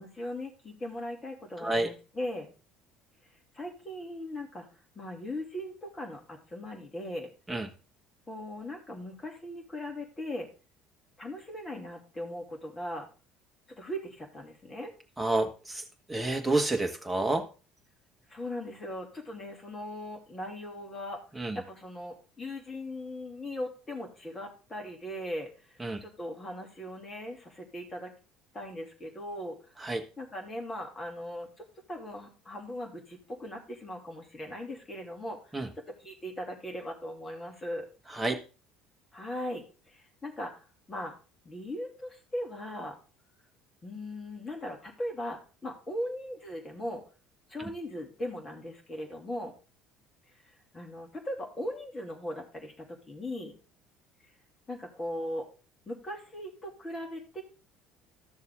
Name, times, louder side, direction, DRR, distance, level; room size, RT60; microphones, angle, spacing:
voice 1, 0.0-2.5 3.5-4.6 5.0-7.3 8.3-10.5 11.2-13.1 13.7-14.9 18.3-21.2 21.5-28.1 28.5-29.6 30.2-35.4 35.8-37.9 39.1-41.2 41.4-43.0 43.8-47.0 47.5-49.5 50.7-53.5 54.7-55.5 55.9-57.4, left 1 dB, 25° left, 2 dB, 2.6 m, -39 dB
voice 2, 1.6-1.9 7.5-7.7 15.2-15.8 16.1-17.4 21.4-21.6 25.8-26.0 29.8-30.0 35.5-35.7 38.1-38.4, right 2 dB, 10° right, 2 dB, 1.5 m, -29 dB
12.5 x 6.6 x 3.6 m, 0.34 s
figure-of-eight pair, 60°, 0 cm